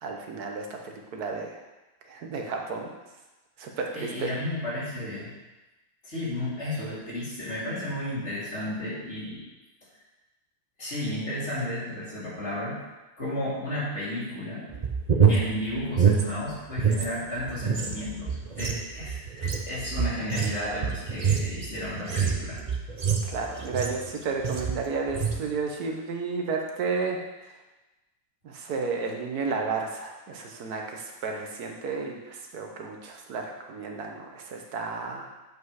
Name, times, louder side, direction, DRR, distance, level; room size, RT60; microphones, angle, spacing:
voice 1, 0.0-1.6 2.1-2.9 3.6-4.3 23.2-27.2 28.4-35.3, right 4 dB, 80° right, 2 dB, 1.5 m, -32 dB
voice 2, 3.9-5.3 6.0-9.4 10.8-12.8 13.2-14.7 15.3-22.6, left 1 dB, 50° left, -8 dB, 3.0 m, -33 dB
sound 1, 14.7-17.1 17.4-24.1 24.4-24.8 25.1-25.4, right 6 dB, 40° right, 0.6 m, -26 dB
8.0 x 5.2 x 4.8 m, 1.1 s
omnidirectional pair, 1.6 m